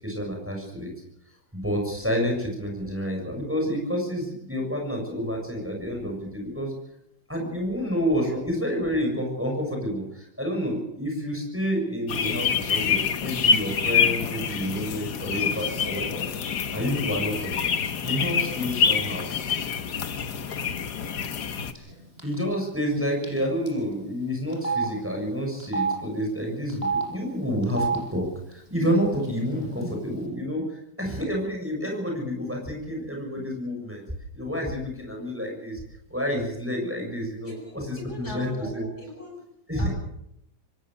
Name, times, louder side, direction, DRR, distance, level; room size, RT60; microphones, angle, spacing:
voice 1, 0.0-0.9 1.5-6.7 7.3-16.3 16.7-17.7 18.0-19.2 21.8-21.9 22.2-34.1 34.3-35.8 36.1-38.9 39.7-39.9, equal, 5° right, 0 dB, 7.1 m, -29 dB
sound 1, 12.1-21.7, left 6 dB, 60° left, 1.8 m, -26 dB
Telephone, 21.8-21.9 22.2-22.3 23.2-23.4 23.7-23.8 24.5-24.9 25.6-25.9 26.7-27.0 27.6-28.0 28.8-28.9 29.2-29.8, right 4 dB, 30° right, 7.2 m, -27 dB
voice 2, 37.4-39.4 39.8-39.9, left 2 dB, 35° left, 0 dB, 7.3 m, -41 dB
26.5 x 17.0 x 6.9 m, 0.78 s
omnidirectional pair, 2.0 m